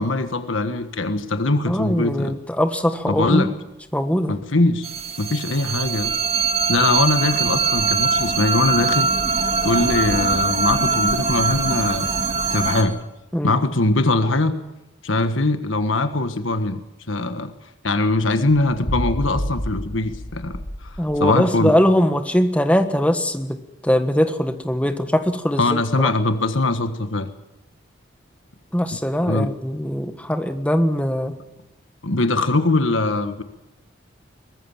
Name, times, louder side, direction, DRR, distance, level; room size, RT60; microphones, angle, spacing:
voice 1, 0.0-2.4 3.1-3.5 4.3-4.9 5.2-6.2 6.7-9.1 9.6-12.1 12.4-13.0 13.4-14.6 15.0-16.8 17.1-17.5 17.8-21.7 25.6-27.3 29.2-29.5 32.0-33.4, left 2 dB, 85° left, 9 dB, 1.5 m, -21 dB
voice 2, 1.7-3.5 3.9-4.3 13.3-13.6 21.0-23.6 23.8-26.1 28.7-31.3, equal, 5° left, 8 dB, 1.4 m, -21 dB
sound 1, 4.8-12.8, right 4 dB, 30° right, 2.3 m, -22 dB
sound 2, 18.5-21.3, equal, 55° left, 1.9 m, -29 dB
23.0 x 20.0 x 7.3 m, 0.95 s
head